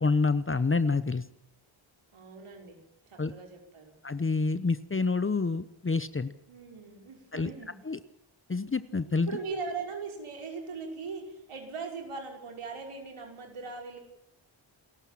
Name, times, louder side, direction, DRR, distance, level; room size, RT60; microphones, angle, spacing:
voice 1, 0.0-1.2 3.2-3.3 4.0-6.3 7.3-7.5 7.8-8.0 8.5-9.3, left 4 dB, 25° left, 13 dB, 0.9 m, -27 dB
voice 2, 2.1-2.8 3.1-3.9 6.5-7.8 9.1-14.0, right 4 dB, 85° right, 2 dB, 5.8 m, -40 dB
28.5 x 14.5 x 7.4 m, 0.78 s
wide cardioid pair, 100°, 49 cm